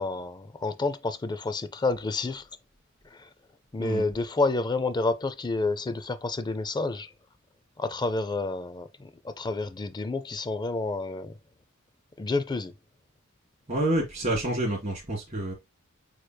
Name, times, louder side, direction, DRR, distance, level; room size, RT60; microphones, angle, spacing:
voice 1, 0.0-2.5 3.1-3.3 3.7-7.1 7.8-11.3 12.2-12.7, left 3 dB, 20° left, 0.4 m, -29 dB
voice 2, 13.7-15.5, right 1 dB, 35° right, 1.8 m, -28 dB
6.6 x 3.0 x 2.2 m
head